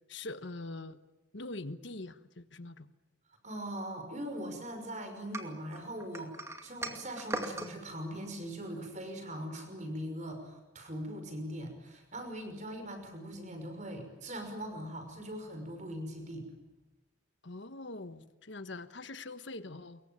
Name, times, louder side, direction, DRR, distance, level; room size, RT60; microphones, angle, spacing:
voice 1, 0.1-1.0 1.3-2.9 17.4-20.0, left 2 dB, 70° left, 11 dB, 1.3 m, -43 dB
voice 2, 3.4-6.3 6.6-16.5, equal, 40° right, 6 dB, 5.8 m, -41 dB
sound 1, 5.3-7.7, right 1 dB, 15° right, 2.4 m, -39 dB
25.5 x 23.0 x 9.0 m, 1.1 s
head